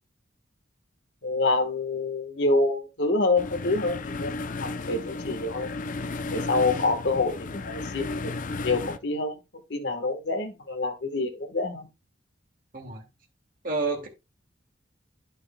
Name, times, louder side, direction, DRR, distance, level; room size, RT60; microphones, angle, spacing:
voice 1, 1.2-5.7 6.3-8.3 8.6-9.4 9.7-11.9, left 3 dB, 65° left, 1.3 m, -27 dB
sound 1, 3.4-9.0, left 3 dB, 45° left, 0.5 m, -34 dB
voice 2, 12.7-13.0 13.6-14.1, right 3 dB, 45° right, 1.9 m, -30 dB
11.0 x 6.2 x 2.2 m
head